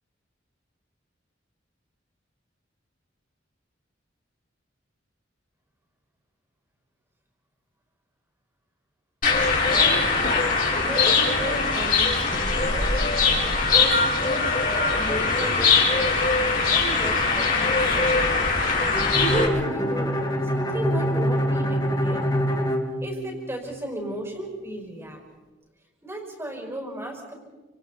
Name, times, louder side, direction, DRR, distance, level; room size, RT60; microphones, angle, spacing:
sound 1, 9.2-19.5, left 4 dB, 45° left, 5.4 m, -21 dB
voice 1, 9.6-10.4 10.7-12.9 13.5-16.3 16.7-18.3 18.9-20.2 20.5-22.2 23.0-25.2 26.0-27.3, right 1 dB, 15° right, 1 dB, 5.8 m, -34 dB
Bowed string instrument, 18.9-23.7, equal, 20° left, 2.2 m, -25 dB
30.0 x 27.5 x 4.3 m, 1.2 s
head